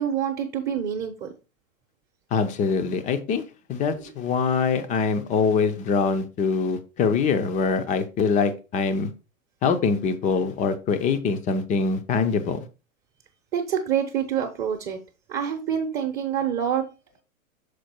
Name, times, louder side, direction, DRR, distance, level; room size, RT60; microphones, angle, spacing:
voice 1, 0.0-1.3 13.5-15.0 15.3-16.8, right 8 dB, 25° right, 2 dB, 1.0 m, -26 dB
voice 2, 2.3-3.4 3.7-9.1 9.6-12.6, left 5 dB, 20° left, 10 dB, 0.7 m, -24 dB
6.6 x 4.4 x 4.4 m, 0.31 s
hypercardioid pair, 130°, 42 cm